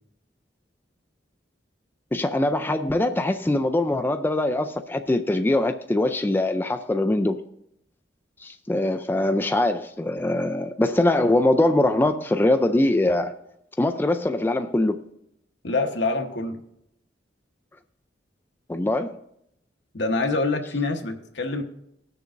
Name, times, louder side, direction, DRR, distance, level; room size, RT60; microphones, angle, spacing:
voice 1, 2.1-7.4 8.4-13.3 13.8-15.0 18.7-19.2, left 1 dB, 10° left, 0.3 m, -22 dB
voice 2, 15.6-16.6 19.9-21.6, left 3 dB, 75° left, 1.1 m, -25 dB
20.0 x 6.7 x 2.5 m
head